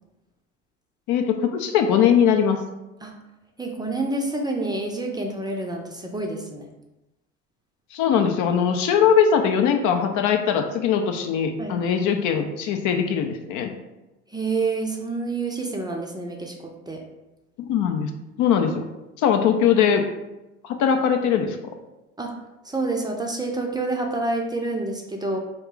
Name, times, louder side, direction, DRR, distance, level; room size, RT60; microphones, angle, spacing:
voice 1, 1.1-2.6 7.9-13.7 17.7-18.1 18.4-18.8 19.2-20.0 20.6-21.6, left 7 dB, 55° left, 5 dB, 0.5 m, -21 dB
voice 2, 3.6-6.7 11.6-11.8 14.3-16.5 16.9-17.0 22.2-22.3 22.6-25.4, right 2 dB, 10° right, 1 dB, 0.5 m, -28 dB
3.0 x 2.3 x 3.7 m, 0.98 s
hypercardioid pair, 75°, 35 cm